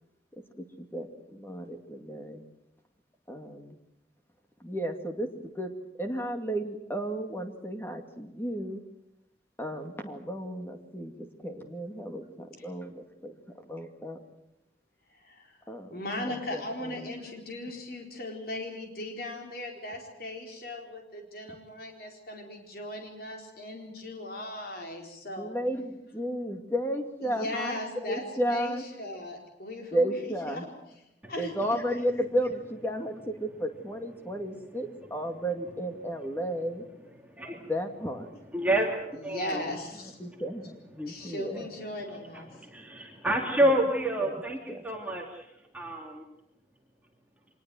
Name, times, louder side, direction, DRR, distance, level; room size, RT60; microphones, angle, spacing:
voice 1, 0.6-2.4 3.3-3.7 4.6-5.3 5.5-5.7 6.0-8.8 9.6-13.4 13.7-14.2 15.7-16.0 16.3-17.1 25.3-28.8 29.9-30.6 31.4-36.8 37.7-38.3 40.2-41.7 43.6-43.7 44.2-44.4 44.7-44.8, equal, 15° left, 5 dB, 2.3 m, -33 dB
voice 2, 15.2-25.6 27.2-28.2 28.5-30.7 31.3-32.1 39.1-40.2 41.1-42.5, left 1 dB, 55° left, 2 dB, 4.3 m, -38 dB
voice 3, 37.2-37.7 38.5-39.7 41.0-41.1 41.5-41.7 42.3-46.2, right 1 dB, 10° right, 0 dB, 2.5 m, -29 dB
24.5 x 20.5 x 7.8 m, 0.82 s
head